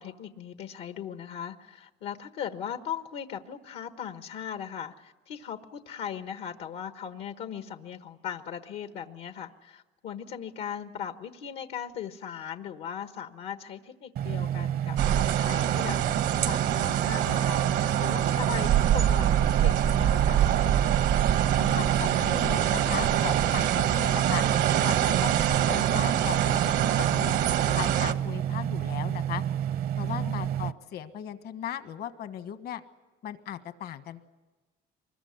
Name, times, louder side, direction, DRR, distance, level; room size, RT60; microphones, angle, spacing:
voice 1, 0.0-16.0 16.4-17.6 18.0-20.7 30.1-30.5, left 8 dB, 85° left, 8 dB, 1.3 m, -38 dB
sound 1, 14.2-30.7, right 10 dB, 65° right, 0.8 m, -30 dB
sound 2, 15.0-28.1, right 11 dB, 80° right, 1.2 m, -25 dB
voice 2, 21.6-24.4 24.8-29.4 30.0-32.8 33.2-34.2, left 10 dB, 70° left, 9 dB, 1.5 m, -37 dB
24.5 x 21.5 x 9.6 m, 1.2 s
cardioid pair, 110°, 17 cm